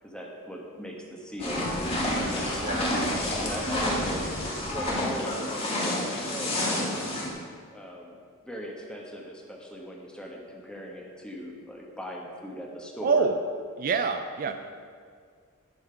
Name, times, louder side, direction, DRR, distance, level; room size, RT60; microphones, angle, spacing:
voice 1, 0.0-1.9 2.2-4.4 4.7-6.9 7.7-8.2 8.4-13.3 14.5-14.6, equal, 5° left, -1 dB, 1.3 m, -39 dB
sound 1, 1.4-7.3, left 1 dB, 30° left, 1.9 m, -29 dB
voice 2, 2.6-3.0 13.0-13.4 13.8-14.5, right 5 dB, 40° right, 7 dB, 0.4 m, -26 dB
12.0 x 5.9 x 5.8 m, 2.1 s
head